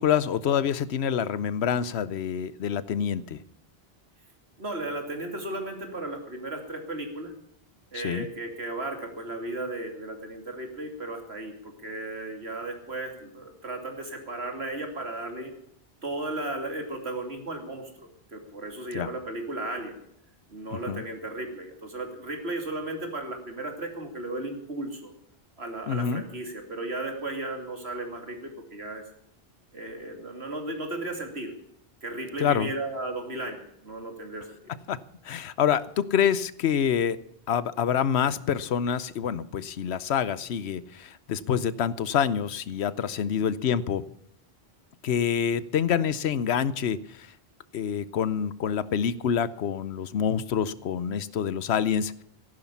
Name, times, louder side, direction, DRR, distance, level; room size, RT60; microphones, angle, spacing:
voice 1, 0.0-3.4 7.9-8.3 18.9-19.1 20.7-21.0 25.9-26.2 32.4-32.7 34.9-35.0 35.2-37.2 37.5-44.0 45.0-47.3 47.7-52.2, left 8 dB, 90° left, 18 dB, 1.0 m, -27 dB
voice 2, 4.6-7.3 7.9-15.5 16.0-17.9 18.3-20.0 20.5-25.1 25.6-29.0 29.7-31.5 32.0-34.7, right 2 dB, 80° right, 4 dB, 3.1 m, -35 dB
15.0 x 11.5 x 7.1 m, 0.74 s
omnidirectional pair, 1.1 m